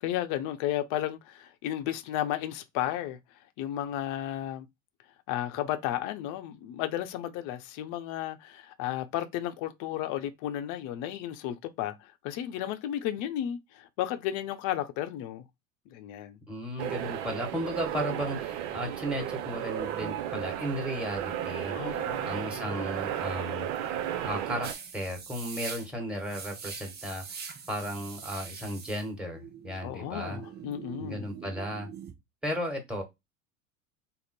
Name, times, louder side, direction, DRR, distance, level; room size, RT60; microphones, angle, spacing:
voice 1, 0.0-3.2 3.6-4.7 5.3-15.4 15.9-16.4 21.7-22.7 29.8-31.3, left 12 dB, 50° left, 0.7 m, -33 dB
voice 2, 16.5-23.7 24.2-30.4 31.0-31.9 32.4-33.0, equal, 5° right, 1.5 m, -35 dB
sound 1, 16.8-24.7, right 11 dB, 60° right, 0.6 m, -34 dB
sound 2, 24.6-32.1, right 6 dB, 25° right, 0.8 m, -43 dB
3.6 x 2.0 x 4.1 m
hypercardioid pair, 80°, 40 cm